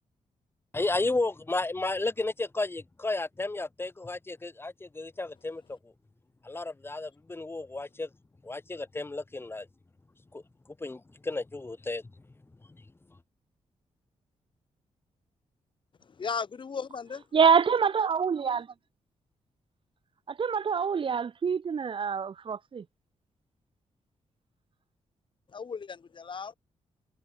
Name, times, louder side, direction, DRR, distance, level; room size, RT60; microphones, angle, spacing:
voice 1, 0.7-5.8 6.4-8.1 8.4-9.7 10.3-10.4 10.8-12.0, left 2 dB, 20° left, 2.3 m, -33 dB
voice 2, 16.0-17.2 25.5-26.5, left 5 dB, 45° left, 3.2 m, -36 dB
voice 3, 17.3-18.7 20.3-22.8, right 6 dB, 45° right, 1.6 m, -25 dB
cardioid pair, 115°, 12 cm